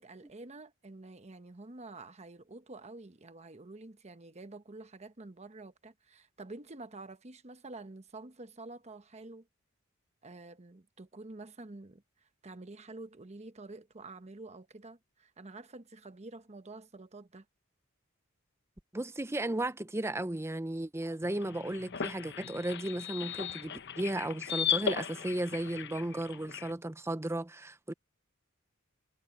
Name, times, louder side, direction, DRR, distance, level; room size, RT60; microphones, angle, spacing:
voice 1, 0.0-9.5 10.2-12.0 12.4-17.4, right 2 dB, 30° right, 1.1 m, -48 dB
voice 2, 18.9-27.9, right 1 dB, 15° right, 0.7 m, -35 dB
sound 1, 21.2-26.7, left 8 dB, 55° left, 0.9 m, -37 dB
head